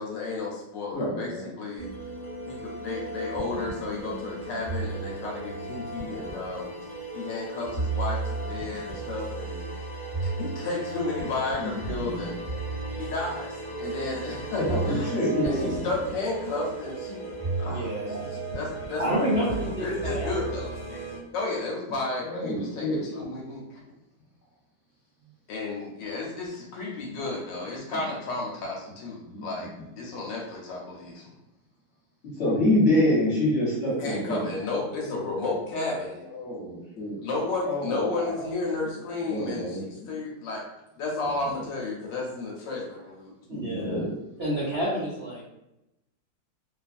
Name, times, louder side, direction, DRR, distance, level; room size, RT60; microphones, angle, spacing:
voice 1, 0.0-1.9 2.5-6.7 7.1-9.6 10.2-12.4 13.0-15.1 15.4-17.9 18.2-21.0 21.3-23.8 25.5-31.3 34.0-36.2 37.2-40.6 41.0-43.3, left 3 dB, 75° left, -2 dB, 1.2 m, -33 dB
voice 2, 0.9-1.4 11.6-12.3 14.0-14.1 14.7-15.6 22.2-23.0 29.2-29.4 32.3-34.5 36.3-37.2 37.6-38.5 39.2-39.8 43.5-44.1, left 1 dB, 45° left, -8 dB, 1.2 m, -27 dB
sound 1, 1.8-21.2, right 3 dB, 15° left, 0.9 m, -34 dB
voice 3, 17.6-18.2 19.0-21.0 35.1-35.5 43.5-44.1 44.4-45.4, equal, 70° right, -7 dB, 0.6 m, -30 dB
2.9 x 2.4 x 2.4 m, 0.89 s
omnidirectional pair, 2.1 m